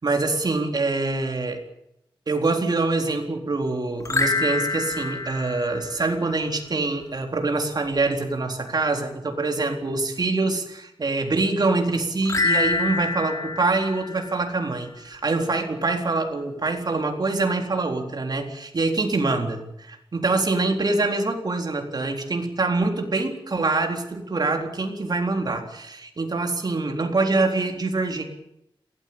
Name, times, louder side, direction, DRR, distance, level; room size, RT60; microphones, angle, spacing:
voice 1, 0.0-1.6 2.3-28.2, right 3 dB, 45° right, 4 dB, 4.0 m, -25 dB
sound 1, 4.0-6.5 12.2-14.9, left 3 dB, 35° left, 4.2 m, -27 dB
22.5 x 18.0 x 8.8 m, 0.80 s
wide cardioid pair, 140°, 9 cm